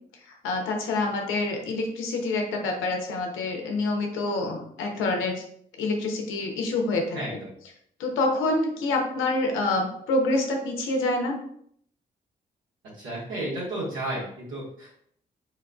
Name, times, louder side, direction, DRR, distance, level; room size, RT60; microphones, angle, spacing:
voice 1, 0.3-5.4 5.8-7.4 8.0-11.4, left 2 dB, 85° left, 2 dB, 0.6 m, -27 dB
voice 2, 7.1-7.5 13.0-14.9, right 1 dB, 85° right, -7 dB, 1.4 m, -32 dB
4.5 x 2.4 x 2.3 m, 0.65 s
hypercardioid pair, 40°, 20 cm